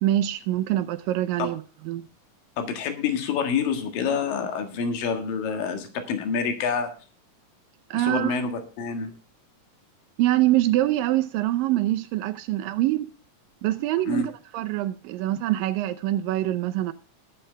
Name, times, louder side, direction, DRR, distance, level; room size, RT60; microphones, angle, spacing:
voice 1, 0.0-2.1 7.9-8.4 10.2-13.1 13.6-16.9, right 14 dB, 85° right, 2.4 m, -24 dB
voice 2, 2.6-6.9 7.9-9.1 13.9-14.3, left 5 dB, 80° left, 3.5 m, -27 dB
20.5 x 7.8 x 3.3 m
omnidirectional pair, 3.9 m